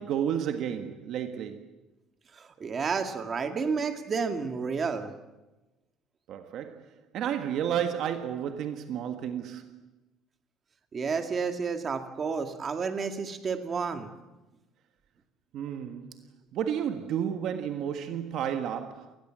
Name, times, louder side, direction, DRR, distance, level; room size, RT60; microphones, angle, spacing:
voice 1, 0.0-1.8 6.3-9.8 15.5-16.3 16.5-19.2, right 9 dB, 50° right, 1.6 m, -32 dB
voice 2, 2.6-5.1 10.9-14.1, right 5 dB, 25° right, 2.1 m, -30 dB
28.5 x 20.5 x 7.6 m
cardioid pair, 165°, 0 cm